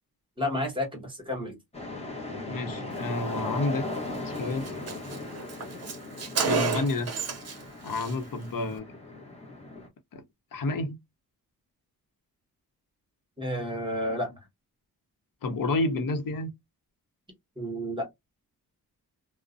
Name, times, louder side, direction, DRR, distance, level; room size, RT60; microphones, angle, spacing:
voice 1, 0.4-1.6 13.4-14.4 17.6-18.1, left 1 dB, 15° right, 1.2 m, -31 dB
sound 1, 1.7-9.9, left 2 dB, 15° left, 0.8 m, -38 dB
voice 2, 2.5-3.9 4.2-4.7 6.4-7.1 7.8-8.9 10.1-10.2 10.5-11.0 15.4-16.5, left 2 dB, 60° left, 0.7 m, -29 dB
Car, 3.9-4.1 4.4-4.5 4.6-7.6 7.9-8.1, right 5 dB, 45° right, 0.7 m, -31 dB
2.5 x 2.1 x 2.4 m
wide cardioid pair, 110°, 37 cm